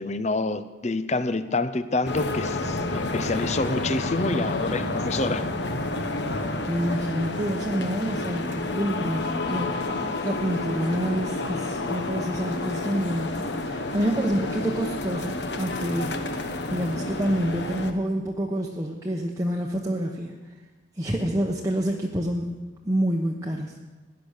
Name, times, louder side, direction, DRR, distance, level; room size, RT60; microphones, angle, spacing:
voice 1, 0.0-5.5, left 2 dB, 35° left, 12 dB, 0.7 m, -27 dB
sound 1, 2.1-17.9, left 2 dB, 60° left, 1.1 m, -30 dB
voice 2, 6.7-20.4 21.0-22.5 22.8-23.8, equal, 15° right, -1 dB, 0.9 m, -28 dB
17.0 x 10.5 x 6.6 m, 1.3 s
head